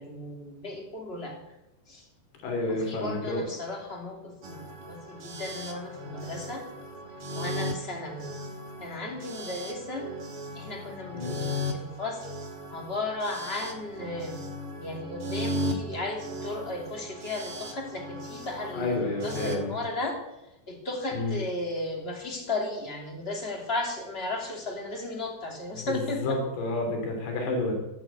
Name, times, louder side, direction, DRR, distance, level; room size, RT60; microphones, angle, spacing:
voice 1, 0.0-1.4 1.9-2.1 2.7-6.6 7.3-8.3 8.8-10.1 10.5-12.3 12.7-14.4 14.8-20.2 20.7-26.4, left 2 dB, 15° left, 2 dB, 2.5 m, -35 dB
voice 2, 2.4-3.4 11.1-11.4 18.7-19.7 21.1-21.4 25.9-26.0 26.2-27.7, left 2 dB, 80° left, 3 dB, 5.3 m, -30 dB
sound 1, 4.4-19.6, left 1 dB, 50° right, 2.0 m, -37 dB
15.0 x 12.0 x 8.3 m, 0.93 s
omnidirectional pair, 4.6 m